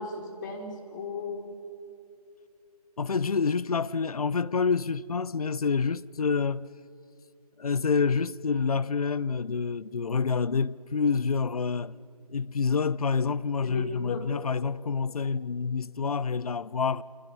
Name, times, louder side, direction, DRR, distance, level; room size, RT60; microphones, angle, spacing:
voice 1, 0.0-1.5 13.6-14.5, left 4 dB, 30° left, 3.2 m, -36 dB
voice 2, 3.0-6.7 7.6-11.9 12.3-17.0, left 5 dB, 70° left, 0.7 m, -27 dB
28.0 x 25.0 x 5.4 m
figure-of-eight pair, 150°, 20 cm